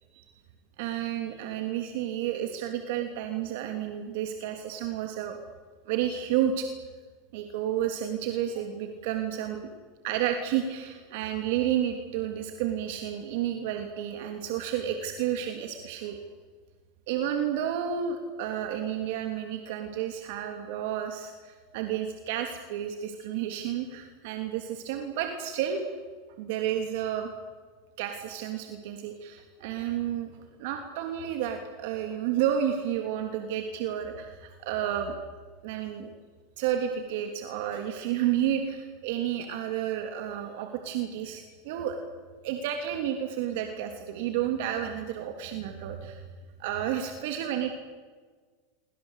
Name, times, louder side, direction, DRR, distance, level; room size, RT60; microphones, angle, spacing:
voice 1, 0.8-5.4 5.9-6.7 7.3-9.6 10.0-16.2 17.1-25.8 26.4-27.3 28.0-30.3 30.6-35.2 35.6-36.1 36.6-42.0 42.4-46.2 46.6-47.7, right 10 dB, 60° right, 5 dB, 3.2 m, -31 dB
29.0 x 24.5 x 8.4 m, 1.5 s
supercardioid pair, 155°, 0 cm